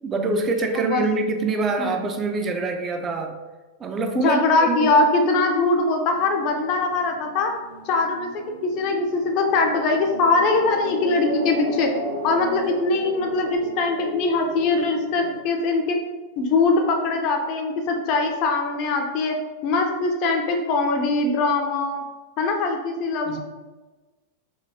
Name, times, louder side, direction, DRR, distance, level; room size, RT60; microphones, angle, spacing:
voice 1, 0.0-3.4 3.8-4.9 23.3-23.4, right 3 dB, 25° right, 6 dB, 0.3 m, -25 dB
voice 2, 4.1-7.5 7.9-11.9 12.2-16.0 16.4-19.4 19.6-22.0 22.4-23.4, left 3 dB, 40° left, 3 dB, 0.4 m, -22 dB
sound 1, 6.1-15.4, right 1 dB, 75° right, 0.5 m, -35 dB
2.7 x 2.7 x 2.6 m, 1.2 s
figure-of-eight pair, 90°, 0 cm